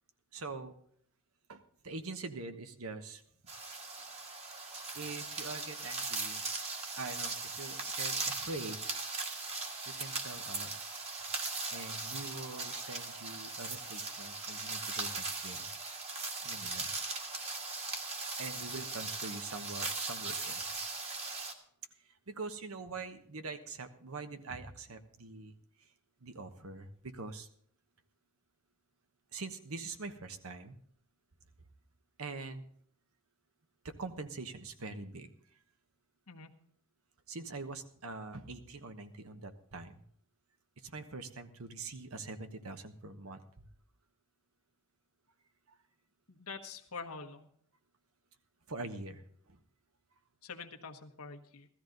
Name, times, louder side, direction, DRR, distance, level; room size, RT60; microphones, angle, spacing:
voice 1, 0.3-0.8 1.5-3.2 4.9-6.4 7.0-8.8 9.9-11.0 11.7-15.7 16.4-16.9 18.4-20.6 22.3-25.5 26.2-27.5 29.3-30.8 32.2-32.6 33.8-35.3 37.3-40.0 40.8-43.4 48.7-49.2 49.5-49.6, right 3 dB, 70° right, 9 dB, 1.2 m, -44 dB
sound 1, 3.5-21.5, right 3 dB, 30° right, 1.6 m, -39 dB
voice 2, 46.3-47.5 50.4-51.7, left 4 dB, 80° left, 4 dB, 1.3 m, -45 dB
16.0 x 13.5 x 4.0 m, 0.64 s
head